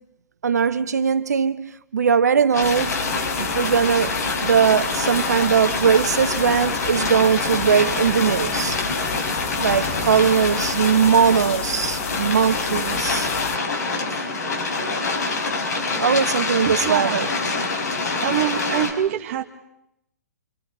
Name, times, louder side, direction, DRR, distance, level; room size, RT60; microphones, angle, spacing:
voice 1, 0.4-3.0 3.4-4.1 4.4-8.8 9.6-13.3 16.0-17.3, right 7 dB, 75° right, 1.3 m, -20 dB
sound 1, 2.5-18.9, left 3 dB, 75° left, 5.5 m, -26 dB
sound 2, 2.6-13.6, left 6 dB, 55° left, 1.7 m, -32 dB
voice 2, 16.7-17.3 18.2-19.4, right 11 dB, 50° right, 1.8 m, -24 dB
27.5 x 27.5 x 5.4 m
figure-of-eight pair, 120°, 9 cm